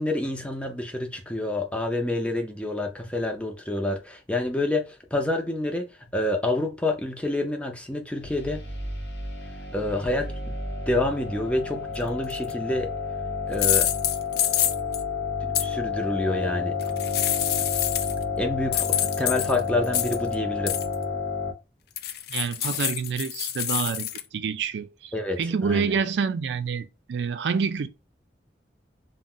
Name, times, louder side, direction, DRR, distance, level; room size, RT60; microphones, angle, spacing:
voice 1, 0.0-8.6 9.7-10.5 10.9-12.9 13.5-13.9 15.6-16.8 18.4-20.8 25.1-25.9, left 2 dB, 5° left, 0.5 m, -28 dB
sound 1, 8.2-21.5, left 4 dB, 80° left, 0.8 m, -31 dB
sound 2, 12.3-12.5 13.5-15.0 15.5-15.6 16.8-18.2 18.7-20.3 20.7-20.9 22.0-24.2, left 12 dB, 60° left, 0.3 m, -26 dB
voice 2, 22.3-27.9, right 6 dB, 80° right, 0.4 m, -28 dB
2.5 x 2.1 x 3.6 m
head